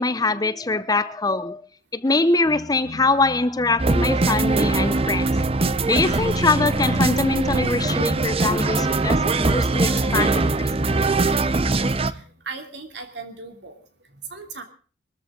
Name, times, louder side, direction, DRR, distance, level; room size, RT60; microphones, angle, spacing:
voice 1, 0.0-1.6 1.9-5.4 5.9-10.7, left 3 dB, 20° left, 0.7 m, -23 dB
sound 1, 2.4-4.3 5.3-8.4 9.2-12.4, left 2 dB, 55° right, 3.6 m, -41 dB
sound 2, 3.8-12.1, right 3 dB, 35° right, 0.8 m, -21 dB
voice 2, 12.0-13.8 14.3-14.6, right 4 dB, 75° right, 3.0 m, -38 dB
22.5 x 14.0 x 3.9 m
head